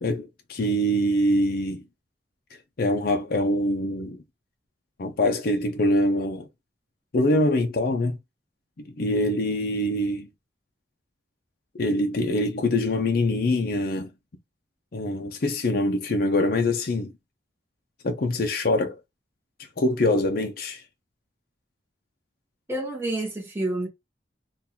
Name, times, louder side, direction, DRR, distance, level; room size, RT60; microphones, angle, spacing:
voice 1, 0.0-1.8 2.8-4.2 5.0-6.5 7.1-8.2 8.8-10.3 11.8-14.1 14.9-17.1 18.0-19.0 19.8-20.8, left 1 dB, 55° left, 0.6 m, -24 dB
voice 2, 22.7-23.9, right 1 dB, 15° right, 1.3 m, -28 dB
3.7 x 2.5 x 2.8 m
head